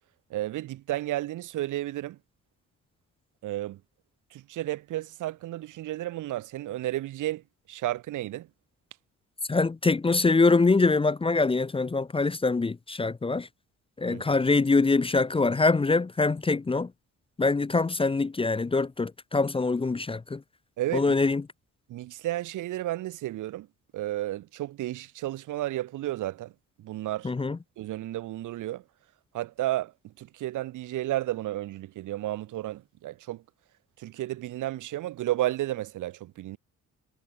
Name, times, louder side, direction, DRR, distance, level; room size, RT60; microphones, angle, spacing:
voice 1, 0.3-2.2 3.4-3.8 4.3-8.5 14.1-14.2 20.8-21.1 21.9-23.7 23.9-26.5 26.8-27.3 27.8-28.8 29.3-33.4 34.0-36.6, right 15 dB, 85° right, 2.6 m, -32 dB
voice 2, 9.5-13.5 14.0-16.9 17.4-20.4 20.9-21.4 27.2-27.6, left 3 dB, 20° left, 0.7 m, -24 dB
cardioid pair, 90°, 30 cm